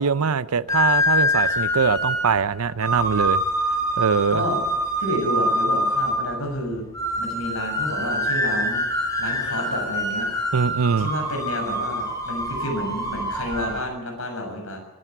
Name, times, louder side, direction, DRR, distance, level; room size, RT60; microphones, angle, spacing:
voice 1, 0.0-3.4 4.0-4.4 10.5-11.1, right 5 dB, 90° right, 16 dB, 0.7 m, -22 dB
sound 1, 0.7-13.8, equal, 15° left, 4.8 m, -25 dB
voice 2, 4.3-4.6 5.0-6.8 7.2-8.8 9.2-10.3 11.0-14.8, left 1 dB, 70° left, 3 dB, 6.8 m, -30 dB
24.5 x 12.0 x 9.2 m, 1.1 s
head